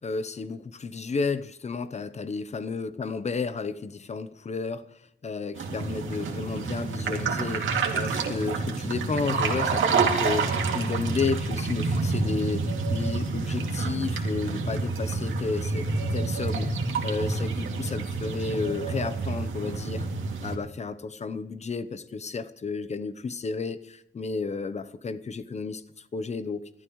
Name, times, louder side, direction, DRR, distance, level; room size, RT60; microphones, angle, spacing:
voice 1, 0.0-10.5 10.7-20.1 20.4-26.7, left 4 dB, 35° left, 13 dB, 0.8 m, -32 dB
sound 1, 5.6-20.6, right 4 dB, 85° right, 2.5 m, -28 dB
26.5 x 13.5 x 3.1 m, 0.81 s
wide cardioid pair, 145°, 20 cm